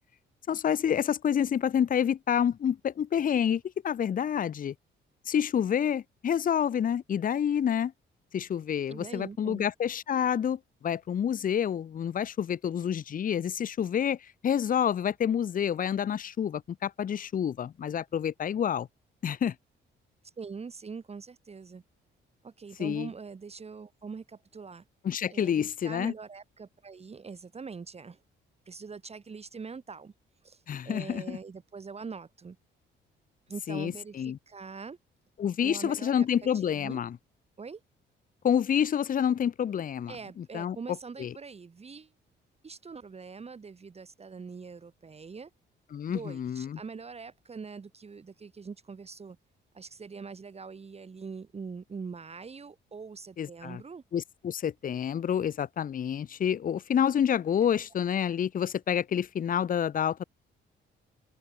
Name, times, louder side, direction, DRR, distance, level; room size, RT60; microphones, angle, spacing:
voice 1, 0.5-4.7 5.3-7.9 8.3-18.9 19.2-19.5 22.8-23.1 25.0-26.1 30.7-31.4 33.7-34.4 35.4-37.2 38.4-40.8 41.2-41.3 45.9-46.8 53.4-53.8 54.1-60.2, left 8 dB, 45° left, 0.7 m, -28 dB
voice 2, 8.9-9.7 20.2-21.8 22.4-24.8 25.3-28.2 28.7-30.1 30.4-32.6 33.5-35.0 35.6-36.3 36.5-37.0 37.6-37.8 40.1-42.1 42.6-45.5 46.1-49.4 49.7-54.0 57.7-57.8, right 5 dB, 30° right, 1.8 m, -43 dB
cardioid pair, 90°, 20 cm